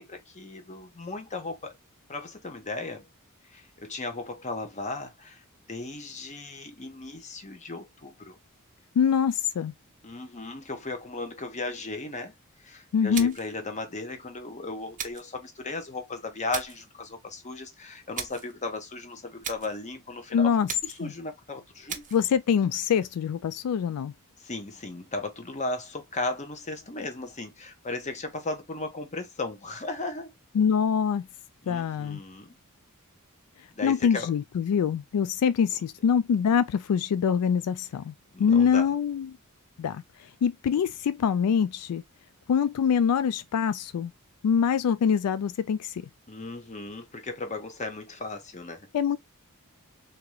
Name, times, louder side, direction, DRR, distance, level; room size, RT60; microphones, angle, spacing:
voice 1, 0.0-1.7 2.1-3.1 3.5-8.4 10.0-12.3 12.6-20.5 20.8-22.0 24.4-30.3 31.6-32.5 33.7-34.3 38.3-38.9 46.3-48.9, left 2 dB, 30° left, 0.9 m, -36 dB
voice 2, 9.0-9.7 12.9-13.3 20.3-20.7 21.0-21.1 22.1-24.1 30.6-31.2 31.7-32.2 33.8-38.1 38.4-39.4 39.8-40.0 40.4-42.0 42.5-44.1 44.4-46.1 48.9-49.2, left 7 dB, 80° left, 0.3 m, -24 dB
sound 1, 13.1-13.6 15.0-15.3 16.5-16.9 18.1-18.5 19.4-19.8 20.7-21.1 21.9-22.3, right 7 dB, 35° right, 0.7 m, -37 dB
3.6 x 2.9 x 3.0 m
head